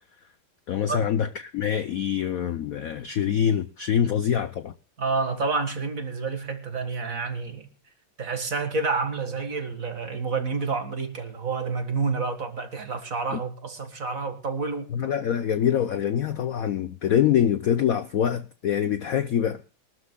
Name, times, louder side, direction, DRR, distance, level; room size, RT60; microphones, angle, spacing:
voice 1, 0.7-4.7 13.3-13.4 14.9-19.6, left 9 dB, 65° left, 0.9 m, -25 dB
voice 2, 5.0-7.7 8.2-15.1, right 4 dB, 40° right, 2.1 m, -29 dB
23.0 x 12.5 x 2.2 m
omnidirectional pair, 2.2 m